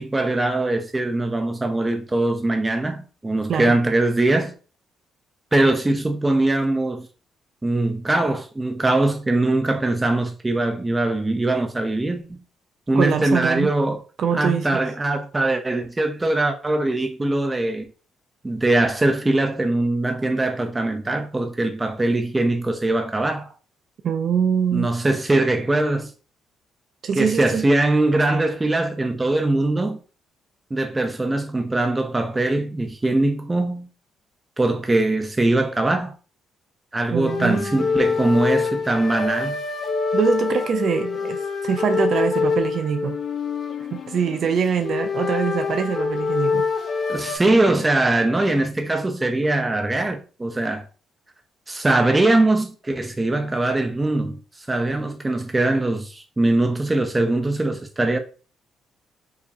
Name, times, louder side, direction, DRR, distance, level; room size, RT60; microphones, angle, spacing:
voice 1, 0.0-4.5 5.5-7.1 7.6-12.4 12.9-14.0 14.3-17.9 18.4-23.5 24.7-26.1 27.2-30.0 30.7-33.9 34.6-36.1 36.9-39.6 47.1-50.9 51.7-54.4 54.7-58.2, right 2 dB, 20° right, 0.7 m, -21 dB
voice 2, 13.0-13.7 14.2-14.8 24.0-24.9 27.0-27.7 37.1-37.9 40.1-43.2 43.9-46.7, right 7 dB, 60° right, 0.5 m, -23 dB
sound 1, 37.3-47.4, left 4 dB, 45° left, 0.8 m, -25 dB
4.8 x 2.9 x 2.7 m
cardioid pair, 90°, 0 cm